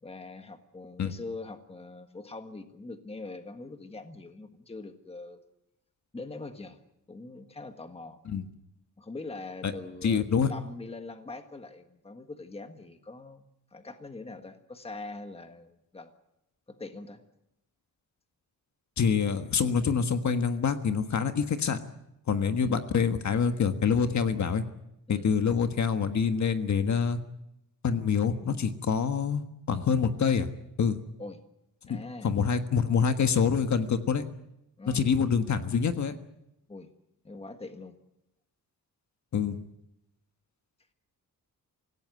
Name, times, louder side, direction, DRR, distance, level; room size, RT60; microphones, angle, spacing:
voice 1, 0.0-5.4 6.1-6.8 7.1-8.2 9.0-16.1 16.7-17.2 22.6-22.8 25.1-25.3 31.2-31.4 31.9-32.3 34.8-35.1 36.7-36.9 37.2-37.9, left 3 dB, 15° left, 8 dB, 1.5 m, -43 dB
voice 2, 10.0-10.5 19.0-21.8 22.3-24.6 25.1-27.2 27.8-29.4 29.7-30.5 30.8-31.0 31.9-32.0 32.2-34.2 34.9-36.2 39.3-39.6, left 6 dB, 55° left, 8 dB, 1.5 m, -26 dB
26.0 x 16.5 x 9.5 m, 0.85 s
wide cardioid pair, 180°, 34 cm